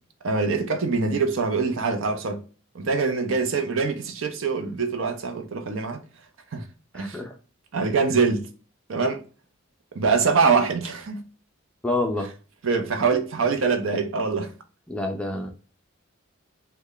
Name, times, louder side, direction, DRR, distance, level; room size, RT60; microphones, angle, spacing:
voice 1, 0.2-2.4 2.7-6.0 6.5-6.6 6.9-7.2 7.7-8.5 8.9-9.2 9.9-11.2 12.6-14.5, right 4 dB, 65° right, 0.6 m, -24 dB
voice 2, 6.9-7.3 11.8-12.3 14.9-15.5, left 2 dB, 5° left, 0.4 m, -27 dB
3.3 x 2.2 x 3.7 m
head